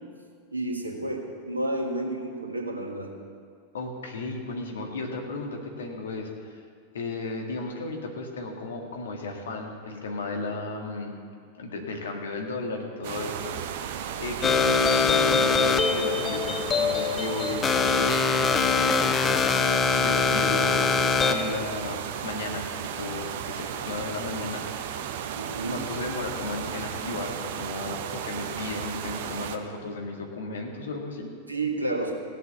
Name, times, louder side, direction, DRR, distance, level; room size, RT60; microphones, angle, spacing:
voice 1, 0.5-3.1 25.4-25.8 31.5-32.1, right 2 dB, 80° right, 1 dB, 1.7 m, -30 dB
voice 2, 3.7-6.6 6.9-11.2 11.6-24.9 25.7-31.3, left 3 dB, 65° left, 2 dB, 2.0 m, -35 dB
sound 1, 13.0-29.6, right 9 dB, 50° right, 0.8 m, -34 dB
sound 2, 14.4-21.5, left 5 dB, 20° left, 0.7 m, -23 dB
16.5 x 8.0 x 7.1 m, 2.2 s
figure-of-eight pair, 90°, 0 cm